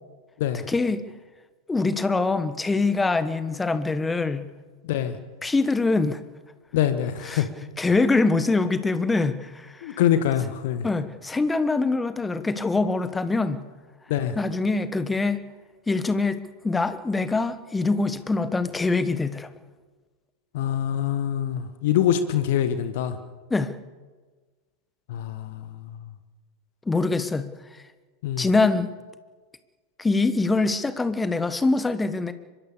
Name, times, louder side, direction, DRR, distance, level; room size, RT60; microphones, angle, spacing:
voice 1, 0.7-1.0 1.7-4.4 5.4-6.2 7.3-7.4 7.8-10.0 10.8-13.6 14.4-15.4 15.9-16.4 16.6-19.5 23.5-23.7 26.9-27.5 28.4-28.9 30.0-32.3, left 3 dB, 10° left, 13 dB, 1.3 m, -24 dB
voice 2, 6.7-7.5 9.8-10.9 14.1-14.3 20.5-23.2 25.1-25.9 28.2-28.5, left 10 dB, 50° left, 10 dB, 1.5 m, -24 dB
24.5 x 22.0 x 6.8 m, 1.4 s
figure-of-eight pair, 90°, 0 cm